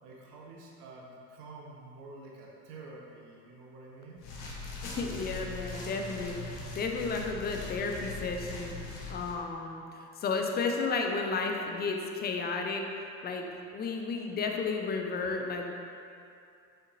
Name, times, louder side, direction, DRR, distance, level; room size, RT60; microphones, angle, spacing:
voice 1, 0.0-4.3, right 2 dB, 65° right, -2 dB, 1.0 m, -48 dB
sound 1, 4.2-9.3, left 3 dB, 70° left, 1.1 m, -41 dB
voice 2, 4.8-8.8 9.1-12.9 13.2-13.5 13.7-15.7, left 4 dB, 20° left, 2 dB, 0.5 m, -33 dB
6.6 x 5.7 x 2.7 m, 2.5 s
figure-of-eight pair, 65°, 49 cm